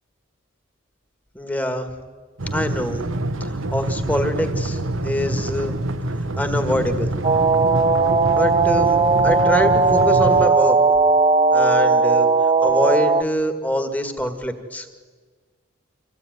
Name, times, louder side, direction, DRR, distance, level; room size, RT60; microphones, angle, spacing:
voice 1, 1.4-1.9 2.5-3.0 3.4-5.8 6.4-7.1 8.3-9.0 9.2-10.8 11.5-12.3 12.6-14.9, equal, 10° left, 7 dB, 1.7 m, -24 dB
sound 1, 2.4-10.5, right 1 dB, 75° right, 1.1 m, -26 dB
sound 2, 7.2-13.2, right 4 dB, 30° right, 0.7 m, -17 dB
25.5 x 16.0 x 9.3 m, 1.5 s
head